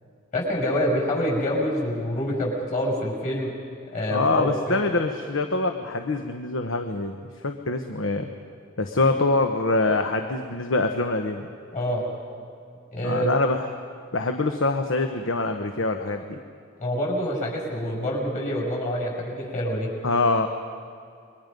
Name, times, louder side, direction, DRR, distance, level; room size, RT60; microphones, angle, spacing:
voice 1, 0.3-3.6 3.9-4.8 9.0-9.1 11.7-12.0 12.9-13.3 16.8-19.9, equal, 40° left, -1 dB, 6.7 m, -26 dB
voice 2, 4.1-7.2 7.4-8.3 8.8-11.4 13.0-13.7 14.1-16.4 20.0-20.5, left 3 dB, 85° left, 6 dB, 1.1 m, -24 dB
28.5 x 23.0 x 5.3 m, 2.4 s
head